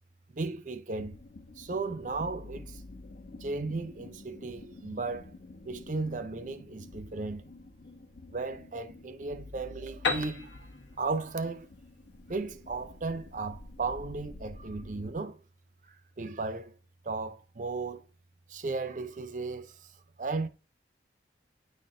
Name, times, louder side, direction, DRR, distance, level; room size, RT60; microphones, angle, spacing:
voice 1, 0.3-1.2 1.6-2.8 3.4-5.3 5.6-7.4 8.3-10.5 11.0-11.7 12.3-15.4 15.9-16.7 17.0-18.1 18.5-19.9 20.2-20.5, right 3 dB, 45° right, 0.5 m, -35 dB
sound 1, 1.0-15.1, left 2 dB, 55° left, 0.5 m, -49 dB
Piano, 10.0-13.7, left 4 dB, 80° left, 1.1 m, -36 dB
9.6 x 4.2 x 2.5 m
head